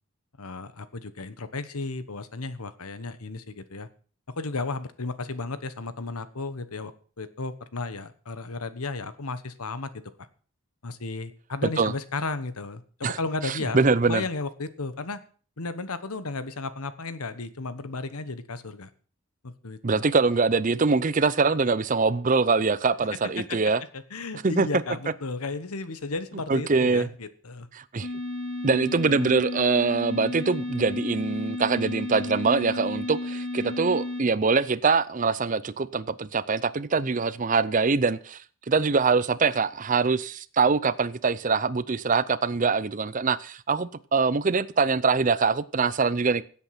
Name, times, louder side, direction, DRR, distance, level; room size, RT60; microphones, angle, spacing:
voice 1, 0.4-3.9 4.4-6.9 7.2-9.9 10.2-10.3 10.8-13.8 14.0-15.2 15.6-18.9 19.4-20.0 23.4-27.7, left 3 dB, 90° left, 1.2 m, -34 dB
voice 2, 13.4-14.2 19.8-23.8 24.4-24.7 26.5-27.1 27.8-28.1 28.6-38.4 38.7-46.4, right 4 dB, 35° right, 0.5 m, -23 dB
sound 1, 28.0-34.2, left 2 dB, 70° left, 4.6 m, -33 dB
16.5 x 8.2 x 5.9 m
head